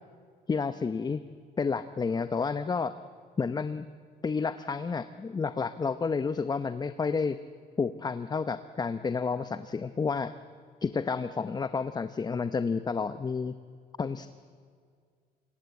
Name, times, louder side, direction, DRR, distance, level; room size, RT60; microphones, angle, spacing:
voice 1, 0.5-1.2 1.6-2.9 3.4-3.8 4.2-7.4 7.8-10.3 10.8-13.5 14.0-14.3, left 5 dB, 25° left, 12 dB, 0.8 m, -30 dB
26.0 x 22.0 x 8.4 m, 2.1 s
cardioid pair, 110°, 17 cm